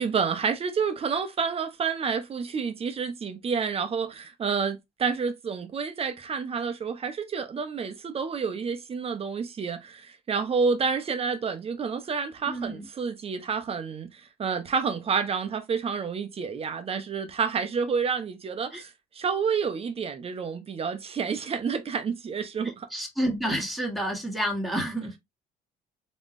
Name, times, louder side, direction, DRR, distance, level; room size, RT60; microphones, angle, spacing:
voice 1, 0.0-18.9 19.2-22.9, right 5 dB, 35° right, 0.8 m, -29 dB
voice 2, 12.5-12.8 18.7-18.8 22.9-25.2, right 1 dB, ahead, 1.6 m, -29 dB
3.6 x 3.1 x 2.5 m
cardioid pair, 110°, 17 cm